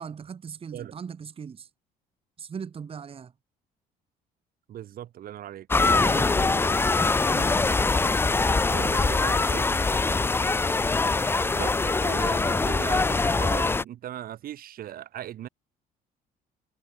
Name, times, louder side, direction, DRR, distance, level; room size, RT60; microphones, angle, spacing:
voice 1, 0.0-1.7 2.4-3.3 7.3-7.7 8.7-9.0, right 6 dB, 35° right, 1.6 m, -40 dB
voice 2, 4.7-6.8 8.7-9.7 11.5-15.5, right 11 dB, 60° right, 2.5 m, -39 dB
sound 1, 5.7-13.8, left 3 dB, 15° left, 0.5 m, -23 dB
cardioid pair, 110°, 17 cm